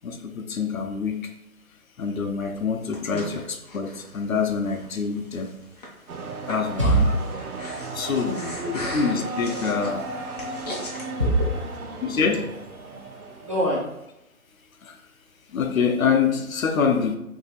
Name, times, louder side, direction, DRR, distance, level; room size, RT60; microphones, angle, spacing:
voice 1, 0.0-1.3 2.0-5.5 6.5-7.1 7.9-8.4 8.7-10.1 12.0-12.5 14.8-14.9 15.5-17.2, left 5 dB, 70° left, 5 dB, 0.7 m, -25 dB
Breathing, 2.6-11.1, left 1 dB, 30° left, 0.6 m, -40 dB
sound 1, 6.1-13.9, right 2 dB, 85° right, 0.7 m, -35 dB
voice 2, 6.8-7.2 8.1-9.0 9.8-9.9 11.2-11.9 13.4-13.9, right 1 dB, 25° right, -5 dB, 0.5 m, -24 dB
2.8 x 2.8 x 4.0 m, 0.85 s
figure-of-eight pair, 150°, 43 cm